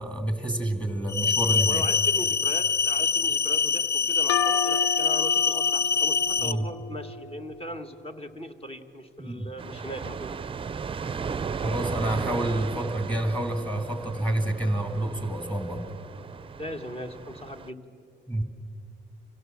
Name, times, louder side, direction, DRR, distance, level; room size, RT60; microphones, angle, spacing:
voice 1, 0.0-1.8 6.4-6.7 9.2-9.5 11.6-15.9 18.3-18.4, right 1 dB, 5° left, 6 dB, 2.4 m, -28 dB
sound 1, 1.1-6.5, left 6 dB, 55° left, 0.7 m, -24 dB
voice 2, 1.7-10.3 16.6-17.8, left 1 dB, 30° left, 7 dB, 1.6 m, -38 dB
sound 2, 4.3-7.8, left 7 dB, 80° left, 1.1 m, -32 dB
sound 3, 9.6-17.7, right 6 dB, 25° right, 0.5 m, -35 dB
26.0 x 17.0 x 7.4 m, 2.5 s
cardioid pair, 90°, 20 cm